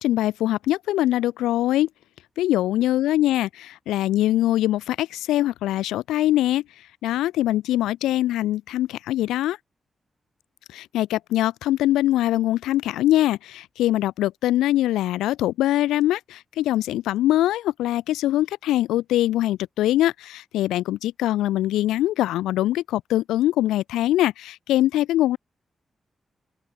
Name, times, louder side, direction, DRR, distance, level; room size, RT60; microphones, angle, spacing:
voice 1, 0.0-1.9 2.4-3.5 3.9-6.6 7.0-9.6 10.7-25.4, left 14 dB, 90° left, 4.8 m, -22 dB
open air
supercardioid pair, 40°, 0 cm